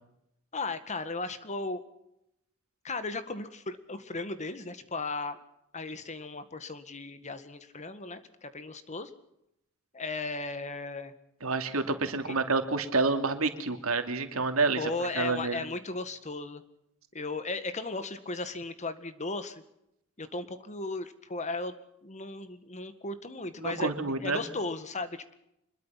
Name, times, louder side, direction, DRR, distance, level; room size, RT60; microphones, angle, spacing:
voice 1, 0.5-1.8 2.8-5.4 5.7-9.1 9.9-11.1 12.3-12.4 14.8-16.6 17.1-19.6 20.2-21.7 22.0-25.4, left 3 dB, 35° left, 11 dB, 1.8 m, -36 dB
voice 2, 11.4-14.9 15.1-15.6 23.6-24.4, right 3 dB, 85° right, 7 dB, 2.7 m, -28 dB
25.5 x 21.5 x 5.9 m, 0.81 s
head